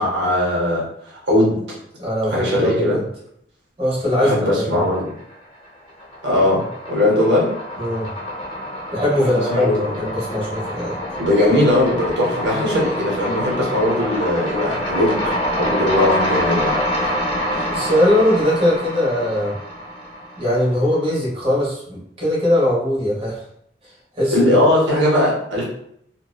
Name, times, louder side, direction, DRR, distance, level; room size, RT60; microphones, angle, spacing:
voice 1, 0.0-1.6 2.3-3.0 4.2-5.1 6.2-6.6 6.9-7.5 9.2-9.9 11.2-16.8 17.0-17.1 17.5-17.6 24.3-25.6, left 1 dB, 80° right, -4 dB, 0.7 m, -19 dB
voice 2, 2.0-3.0 3.8-4.9 7.8-8.1 8.9-11.0 17.7-19.5 20.4-23.4 24.2-24.6, left 1 dB, 35° right, -6 dB, 1.0 m, -20 dB
sound 1, 4.6-5.3 5.6-20.8, equal, 30° left, 0.7 m, -26 dB
2.7 x 2.0 x 2.3 m, 0.72 s
head